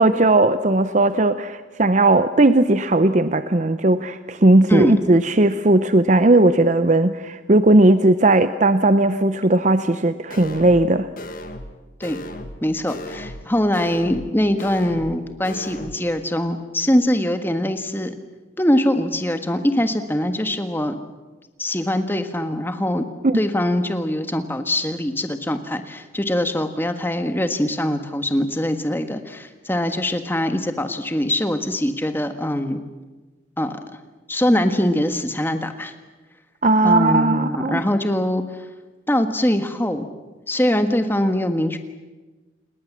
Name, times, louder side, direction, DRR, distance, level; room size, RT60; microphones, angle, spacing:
voice 1, 0.0-11.1 23.2-23.4 36.6-37.8, right 2 dB, 40° right, 11 dB, 0.7 m, -17 dB
sound 1, 10.3-10.9 11.2-11.7 12.0-12.6 12.9-13.4 13.7-14.3 14.6-15.2 15.4-15.9, left 1 dB, 50° left, 1.9 m, -35 dB
voice 2, 12.6-18.2 18.6-21.0 21.6-23.0 23.3-32.8 33.6-33.8 34.3-35.9 36.8-38.4 39.1-40.1 40.5-41.8, left 1 dB, 10° left, 8 dB, 1.6 m, -22 dB
29.0 x 20.5 x 7.4 m, 1.2 s
head